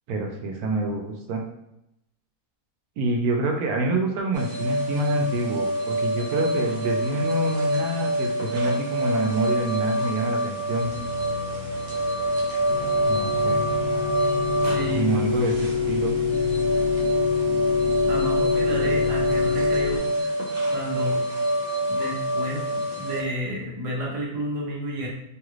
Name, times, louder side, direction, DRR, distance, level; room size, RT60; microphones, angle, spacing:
voice 1, 0.1-1.4 3.0-10.9 13.0-13.6 14.9-16.1, right 2 dB, 80° right, 2 dB, 1.1 m, -27 dB
sound 1, 4.3-23.2, right 1 dB, 60° right, 1.1 m, -26 dB
sound 2, 10.8-15.9, left 1 dB, 5° right, 0.8 m, -41 dB
sound 3, 12.7-20.0, left 6 dB, 60° left, 0.8 m, -25 dB
voice 2, 14.7-15.2 18.1-20.1 20.7-21.2 21.9-25.1, equal, 35° right, -3 dB, 0.6 m, -31 dB
3.1 x 2.4 x 3.0 m, 0.85 s
omnidirectional pair, 1.6 m